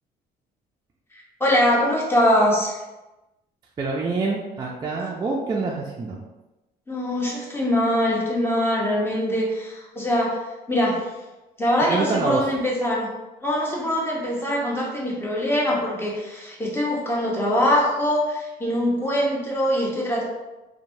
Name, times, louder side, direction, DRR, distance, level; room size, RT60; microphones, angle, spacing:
voice 1, 1.4-2.8 6.9-11.1 11.6-13.1 13.4-20.2, equal, 15° left, -3 dB, 0.7 m, -23 dB
voice 2, 3.8-6.2 11.8-12.5, right 3 dB, 25° right, -2 dB, 0.3 m, -26 dB
2.9 x 2.1 x 2.6 m, 1.0 s
cardioid pair, 110°, 17 cm